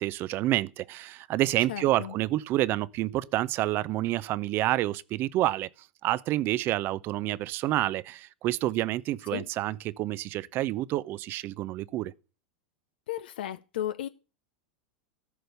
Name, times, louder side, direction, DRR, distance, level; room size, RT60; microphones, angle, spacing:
voice 1, 0.0-5.7 6.0-12.1, right 15 dB, 45° right, 0.6 m, -28 dB
voice 2, 1.7-2.1 9.3-9.5 13.1-14.1, left 12 dB, 75° left, 0.6 m, -34 dB
13.5 x 5.4 x 7.9 m
hypercardioid pair, 100°, 5 cm